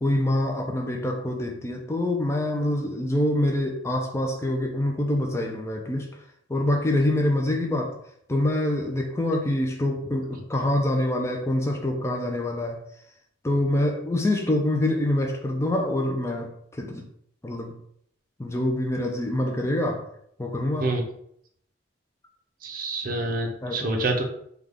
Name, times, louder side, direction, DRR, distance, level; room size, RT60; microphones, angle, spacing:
voice 1, 0.0-6.1 6.5-8.0 8.3-12.8 13.4-16.5 16.8-17.1 17.4-17.8 18.4-20.1 20.4-21.0 23.6-24.1, left 1 dB, 15° left, 1 dB, 0.4 m, -25 dB
voice 2, 22.6-24.2, right 2 dB, 45° right, 2 dB, 0.6 m, -27 dB
3.7 x 2.3 x 3.3 m, 0.69 s
head